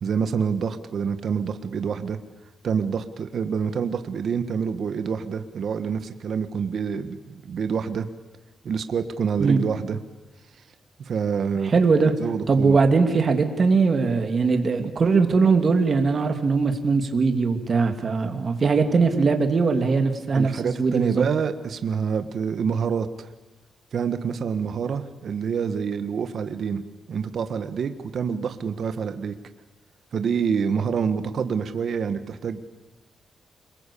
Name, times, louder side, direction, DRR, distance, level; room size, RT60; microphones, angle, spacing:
voice 1, 0.0-2.2 2.6-8.1 8.6-10.0 11.0-11.7 12.2-12.8 20.3-23.3 23.9-26.8 27.1-29.4 30.1-32.7, right 6 dB, 55° right, 9 dB, 1.6 m, -27 dB
voice 2, 11.6-12.1 12.5-21.2, right 4 dB, 35° right, 6 dB, 2.6 m, -20 dB
29.0 x 21.5 x 8.6 m, 1.1 s
wide cardioid pair, 150°, 0 cm